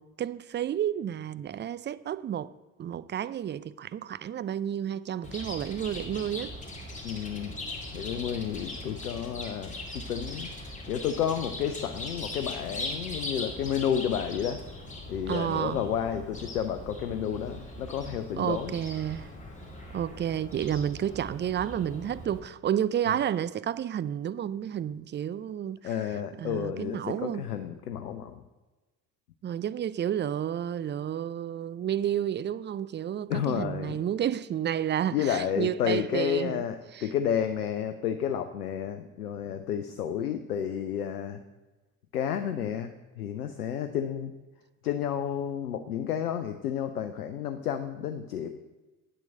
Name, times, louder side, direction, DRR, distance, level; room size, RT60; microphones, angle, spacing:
voice 1, 0.0-2.5 2.8-6.6 15.3-15.8 18.4-19.3 19.9-25.9 26.4-27.4 29.4-36.6 36.9-37.1, right 10 dB, 25° right, 0.4 m, -31 dB
Chirp tweet, 5.2-22.4, left 1 dB, 15° left, 2.6 m, -40 dB
voice 2, 7.0-7.5 7.9-10.5 10.9-14.6 15.1-18.7 23.1-23.2 25.8-28.4 33.3-34.0 35.1-41.4 42.1-44.3 44.8-48.5, left 9 dB, 90° left, 0.6 m, -31 dB
8.9 x 7.5 x 6.5 m
hypercardioid pair, 55°, 44 cm